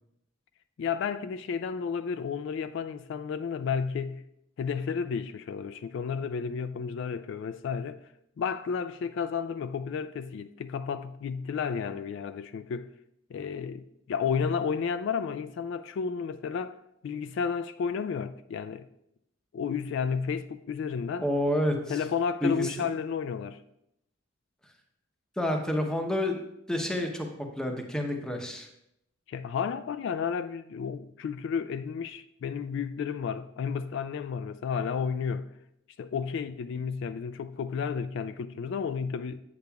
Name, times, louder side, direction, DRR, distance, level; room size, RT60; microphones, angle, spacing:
voice 1, 0.8-4.2 4.6-8.0 8.4-12.9 13.3-16.8 17.0-18.9 19.5-21.3 21.9-23.6 29.3-35.5 36.0-39.4, left 6 dB, 65° left, 0.3 m, -32 dB
voice 2, 21.2-22.0 22.4-22.7 25.4-26.4 26.7-27.3 27.6-28.7, left 1 dB, 5° left, 0.8 m, -28 dB
8.6 x 7.9 x 2.3 m
head